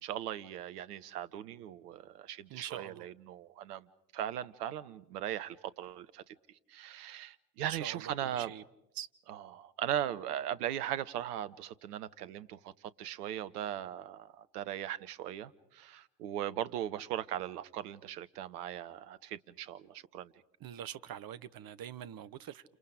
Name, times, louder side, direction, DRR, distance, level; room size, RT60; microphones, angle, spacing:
voice 1, 0.0-3.8 4.1-6.2 6.7-8.5 9.3-12.6 13.0-20.3, right 11 dB, 75° right, 1.0 m, -39 dB
voice 2, 2.5-3.1 7.7-8.6 8.9-9.1 20.6-22.6, right 10 dB, 45° right, 1.1 m, -44 dB
30.0 x 27.0 x 5.0 m
figure-of-eight pair, 45°, 47 cm